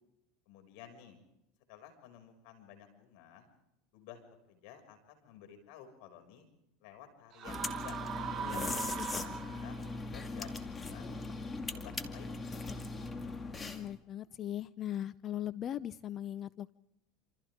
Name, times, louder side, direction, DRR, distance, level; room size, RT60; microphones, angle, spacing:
voice 1, 0.5-1.2 1.7-3.5 3.9-4.2 4.5-6.5 6.8-8.0 8.4-9.0 9.2-9.8 10.1-11.1 11.4-12.9, left 9 dB, 70° left, 7 dB, 6.6 m, -54 dB
sound 1, 7.3-10.0, right 7 dB, 45° right, 1.5 m, -40 dB
sound 2, 7.5-14.0, left 3 dB, 20° left, 2.3 m, -40 dB
voice 2, 8.4-8.7 9.1-9.2 13.5-16.7, left 11 dB, 40° left, 17 dB, 0.7 m, -39 dB
28.0 x 27.5 x 3.8 m, 0.85 s
supercardioid pair, 115°, 0 cm